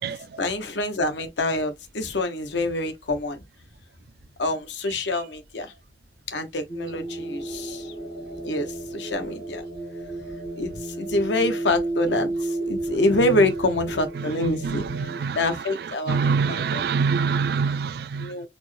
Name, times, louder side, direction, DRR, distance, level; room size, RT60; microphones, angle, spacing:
voice 1, 0.4-3.4 4.4-5.7 6.3-7.9 8.4-9.6 10.6-14.8 15.3-16.9 18.2-18.5, left 2 dB, 80° left, 0.8 m, -26 dB
sound 1, 6.7-15.2, right 2 dB, 60° left, 1.4 m, -32 dB
voice 2, 14.6-15.4 16.1-18.3, right 5 dB, 55° right, 0.3 m, -24 dB
4.1 x 2.1 x 3.2 m
head